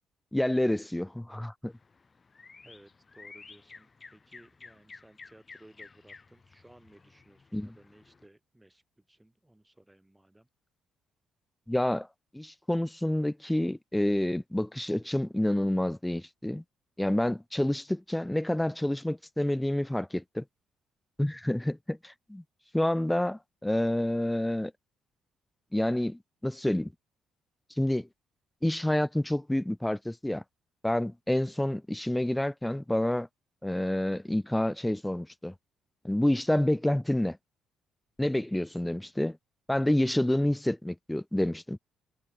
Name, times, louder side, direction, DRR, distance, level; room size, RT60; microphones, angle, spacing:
voice 1, 0.3-1.7 7.5-7.7 11.7-12.1 12.3-16.6 17.0-20.4 21.2-22.4 22.7-24.7 25.7-26.9 27.8-28.1 28.6-30.4 30.8-33.3 33.6-35.5 36.0-37.4 38.2-39.4 39.7-41.8, left 1 dB, 5° left, 0.6 m, -28 dB
sound 1, 1.7-8.3, left 4 dB, 35° left, 5.5 m, -53 dB
voice 2, 2.6-10.5, right 1 dB, 10° right, 3.8 m, -58 dB
supercardioid pair, 75°, 0 cm